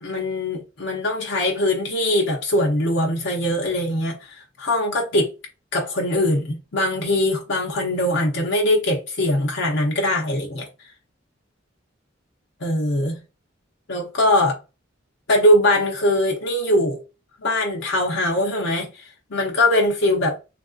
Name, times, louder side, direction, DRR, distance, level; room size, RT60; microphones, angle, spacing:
voice 1, 0.0-5.3 5.7-10.7 12.6-13.2 13.9-14.6 15.3-17.0 17.4-20.4, left 1 dB, 65° left, 0.7 m, -21 dB
3.5 x 2.5 x 2.4 m
head